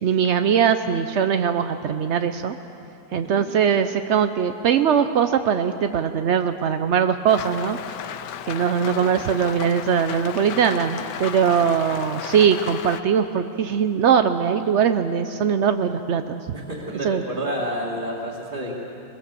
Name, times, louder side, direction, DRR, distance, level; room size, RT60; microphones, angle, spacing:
voice 1, 0.0-2.6 3.1-8.0 8.4-16.4 17.0-17.2, right 7 dB, 80° right, 9 dB, 0.6 m, -21 dB
Rain, 7.3-13.0, left 10 dB, 75° left, 1.3 m, -34 dB
voice 2, 16.5-18.7, equal, 25° right, -6 dB, 2.4 m, -29 dB
22.5 x 21.0 x 7.0 m, 2.9 s
omnidirectional pair, 2.0 m